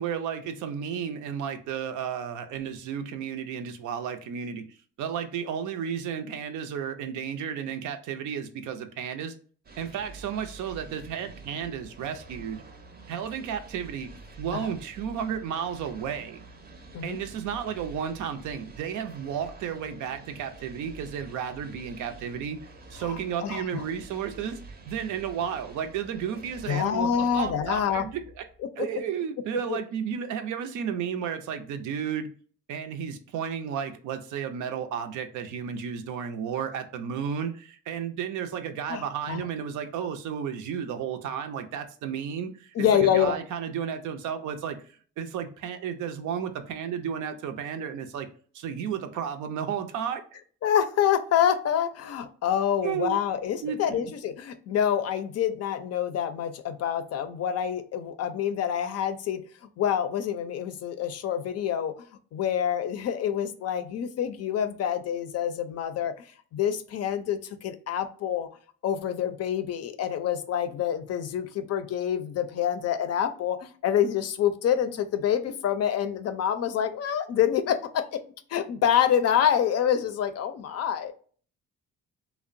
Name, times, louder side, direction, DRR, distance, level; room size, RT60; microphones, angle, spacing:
voice 1, 0.0-9.4 9.8-12.6 13.1-16.4 17.0-22.6 22.9-24.6 24.9-28.4 28.8-32.3 32.7-44.8 45.2-48.3 48.5-50.2 52.8-53.2 53.6-54.0, right 8 dB, 80° right, 0.5 m, -33 dB
sound 1, 9.6-28.7, right 3 dB, 30° right, 0.5 m, -48 dB
voice 2, 23.0-23.8 26.7-28.0 28.6-28.9 29.7-29.8 38.9-39.5 42.7-43.4 50.6-59.4 59.8-61.9 62.3-66.3 66.5-68.5 68.8-78.2 78.5-81.1, left 9 dB, 55° left, 0.4 m, -27 dB
2.8 x 2.0 x 2.5 m
cardioid pair, 90°, 30 cm